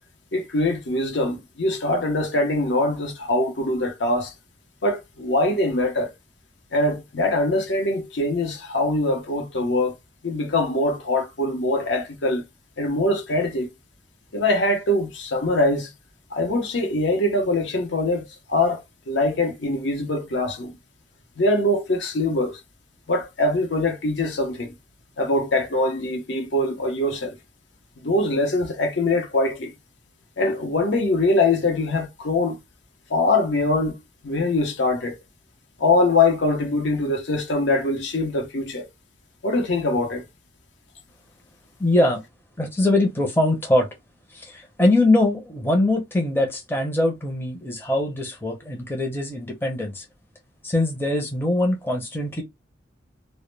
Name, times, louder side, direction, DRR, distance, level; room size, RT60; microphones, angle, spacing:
voice 1, 0.3-4.3 4.8-6.1 6.7-9.9 10.2-12.4 12.8-13.7 14.3-15.9 16.3-20.7 21.4-22.6 23.1-24.7 25.2-27.3 28.0-29.7 30.4-32.6 33.1-33.9 34.2-35.2 35.8-38.9 39.4-40.3, left 2 dB, 70° left, 0.7 m, -23 dB
voice 2, 41.8-42.2 42.6-43.9 44.3-50.0 50.6-52.4, left 1 dB, 10° left, 0.5 m, -22 dB
2.1 x 2.0 x 3.1 m
head